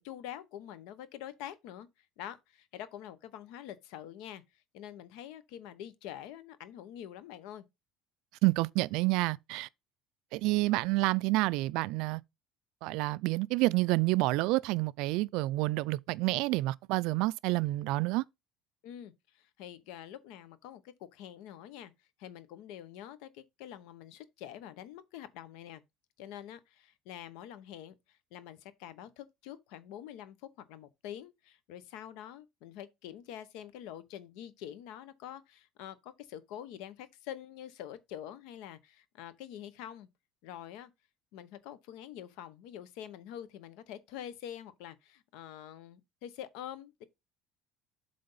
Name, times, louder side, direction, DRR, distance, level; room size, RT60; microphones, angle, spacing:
voice 1, 0.0-4.4 4.7-7.6 18.8-21.9 22.2-25.8 26.2-40.1 40.4-40.9 41.3-47.1, left 11 dB, 75° left, 0.9 m, -46 dB
voice 2, 8.4-9.7 10.3-12.2 12.8-18.2, right 21 dB, 70° right, 0.3 m, -29 dB
7.8 x 3.4 x 5.5 m
cardioid pair, 160°, 0 cm